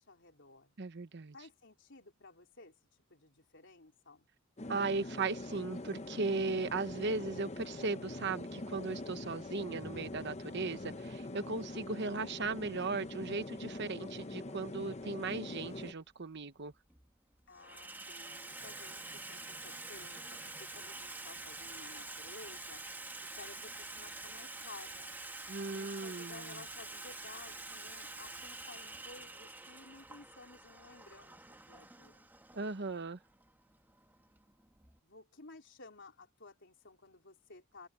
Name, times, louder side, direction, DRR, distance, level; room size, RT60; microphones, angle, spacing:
voice 1, 0.0-0.7 1.3-2.8 3.1-4.3 17.5-22.8 23.2-25.1 25.7-32.3 35.0-37.9, left 3 dB, 60° left, 4.3 m, -55 dB
voice 2, 0.8-1.3 4.7-16.7 25.5-26.6 32.5-33.2, right 3 dB, 55° right, 1.0 m, -37 dB
sound 1, 4.6-15.9, left 2 dB, 30° left, 0.9 m, -44 dB
Water tap faucet / Sink (filling or washing), 15.6-15.7 16.7-17.1 17.4-35.0, right 2 dB, 10° right, 1.8 m, -47 dB
open air
head